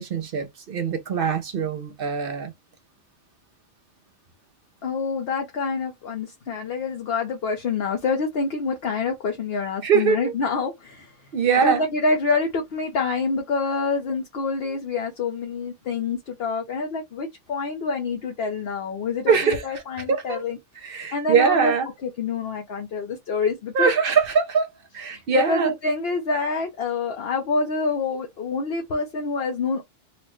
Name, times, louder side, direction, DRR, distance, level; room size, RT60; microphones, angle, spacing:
voice 1, 0.0-2.5 9.8-10.3 11.3-11.8 19.3-19.6 20.1-20.4 20.8-21.9 23.7-25.7, right 6 dB, 55° right, 0.7 m, -22 dB
voice 2, 4.8-11.3 11.6-20.6 21.1-21.7 22.0-23.9 25.1-29.8, left 4 dB, 60° left, 1.0 m, -27 dB
4.1 x 2.1 x 3.0 m
omnidirectional pair, 1.2 m